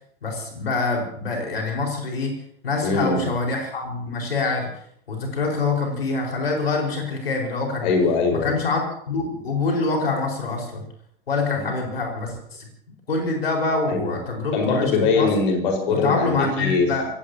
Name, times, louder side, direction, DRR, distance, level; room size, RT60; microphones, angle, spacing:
voice 1, 0.2-2.4 2.6-4.7 5.1-7.9 8.4-10.9 11.3-12.7 13.1-15.3 15.9-17.1, left 3 dB, 70° left, 1 dB, 5.2 m, -25 dB
voice 2, 2.8-3.3 7.8-8.5 11.5-11.7 13.9-14.2 14.5-16.9, left 4 dB, 55° left, 2 dB, 5.2 m, -22 dB
28.5 x 17.0 x 2.9 m, 0.64 s
figure-of-eight pair, 85°, 30 cm